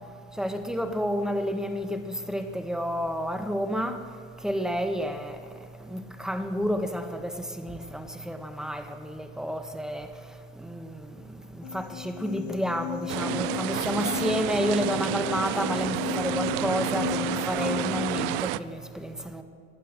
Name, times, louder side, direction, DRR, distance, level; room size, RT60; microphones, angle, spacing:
voice 1, 0.4-4.0 4.4-5.4 5.9-10.1 10.6-11.0 11.7-19.4, equal, ahead, 7 dB, 1.5 m, -30 dB
sound 1, 11.6-18.4, left 21 dB, 85° left, 0.5 m, -35 dB
sound 2, 13.1-18.6, right 17 dB, 70° right, 0.6 m, -30 dB
18.5 x 11.5 x 6.6 m, 2.5 s
supercardioid pair, 90°, 37 cm